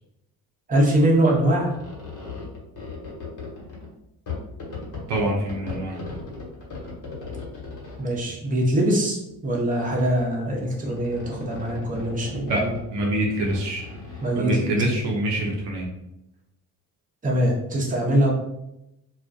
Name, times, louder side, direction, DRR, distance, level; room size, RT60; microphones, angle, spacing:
voice 1, 0.7-1.7 8.0-12.7 14.2-14.8 17.2-18.3, right 1 dB, 20° right, -2 dB, 0.8 m, -23 dB
sound 1, 1.1-3.9 4.3-8.2 9.1-9.5 9.8-10.2 10.6-14.4, left 4 dB, 40° left, 1.0 m, -37 dB
voice 2, 5.1-6.0 12.5-12.6 12.9-13.9 14.4-15.9, right 1 dB, 65° right, -1 dB, 0.7 m, -25 dB
2.2 x 2.1 x 2.6 m, 0.87 s
hypercardioid pair, 50°, 46 cm